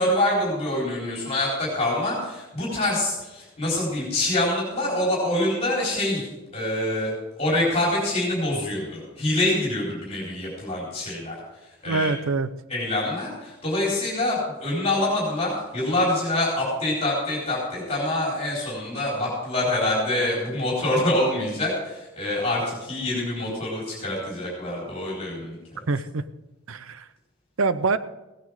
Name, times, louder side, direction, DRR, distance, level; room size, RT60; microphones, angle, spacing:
voice 1, 0.0-6.2 6.5-7.1 7.4-11.4 11.8-12.1 12.7-25.6, left 1 dB, 30° left, -5 dB, 4.3 m, -25 dB
voice 2, 11.9-12.5 25.9-26.2 26.7-27.0 27.6-28.0, right 3 dB, 70° right, 14 dB, 0.7 m, -24 dB
16.5 x 9.6 x 4.9 m, 1.0 s
head